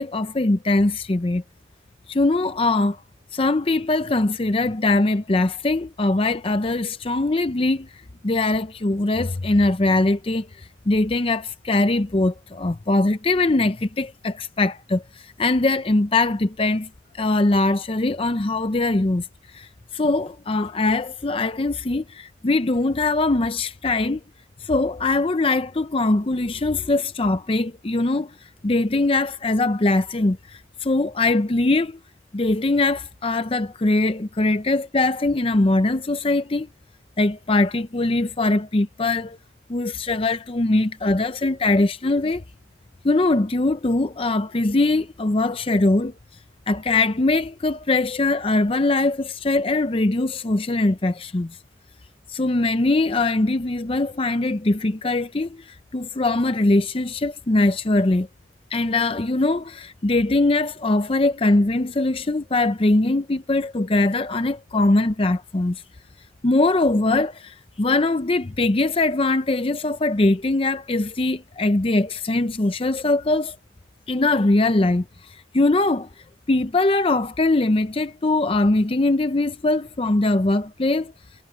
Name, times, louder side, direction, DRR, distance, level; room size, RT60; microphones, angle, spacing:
voice 1, 0.0-1.4 2.1-3.0 3.3-7.9 8.2-16.9 17.1-19.3 19.5-24.2 24.6-28.3 28.6-32.0 32.3-36.7 37.2-39.4 39.7-42.4 43.0-46.1 46.7-51.6 52.3-58.3 58.7-65.8 66.4-73.6 74.1-76.1 76.5-81.1, left 2 dB, 30° left, 0.6 m, -21 dB
head